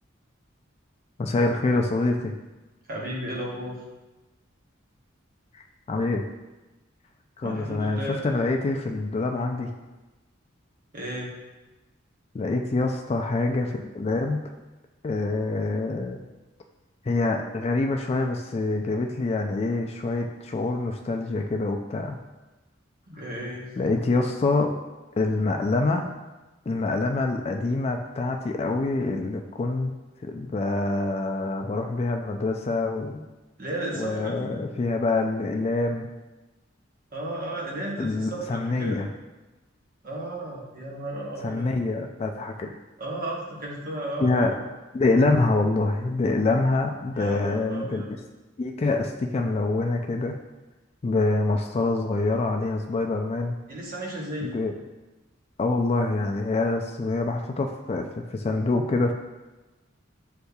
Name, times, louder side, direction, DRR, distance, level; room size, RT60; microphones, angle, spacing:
voice 1, 1.2-2.3 5.9-6.2 7.4-9.7 12.3-14.4 15.0-16.2 17.1-22.2 23.8-24.7 25.2-26.1 26.7-29.9 30.2-33.3 33.9-36.1 38.0-39.1 41.4-42.7 44.2-44.5 44.9-48.0 48.6-50.4 51.0-53.6 54.4-54.7 55.6-59.1, left 3 dB, 30° left, 3 dB, 0.3 m, -25 dB
voice 2, 2.9-3.8 7.4-8.2 10.9-11.3 23.1-23.7 33.6-34.5 37.1-39.1 40.0-41.7 43.0-44.5 47.2-48.1 53.7-54.6, right 1 dB, 50° right, -3 dB, 1.0 m, -34 dB
8.0 x 2.7 x 2.3 m, 1.1 s
head